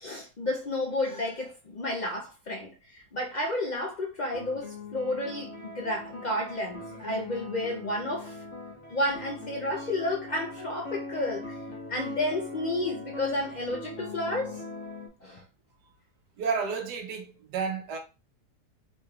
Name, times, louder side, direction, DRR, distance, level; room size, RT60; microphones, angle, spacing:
voice 1, 0.0-8.4 8.9-11.6 11.9-14.6 15.2-15.4, left 1 dB, 80° left, 0.4 m, -31 dB
sound 1, 4.3-15.1, left 2 dB, 50° left, 1.3 m, -41 dB
voice 2, 16.4-18.0, right 5 dB, 85° right, 1.4 m, -31 dB
4.0 x 3.2 x 2.3 m
omnidirectional pair, 1.7 m